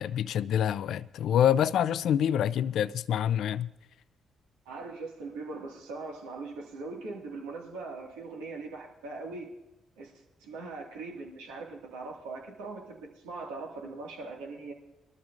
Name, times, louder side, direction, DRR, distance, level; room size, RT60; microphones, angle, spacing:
voice 1, 0.0-3.7, left 9 dB, 70° left, 0.4 m, -26 dB
voice 2, 4.7-9.5 10.0-10.1 10.4-14.7, right 3 dB, 90° right, 1.9 m, -41 dB
21.5 x 13.0 x 2.5 m
hypercardioid pair, 50°, 0 cm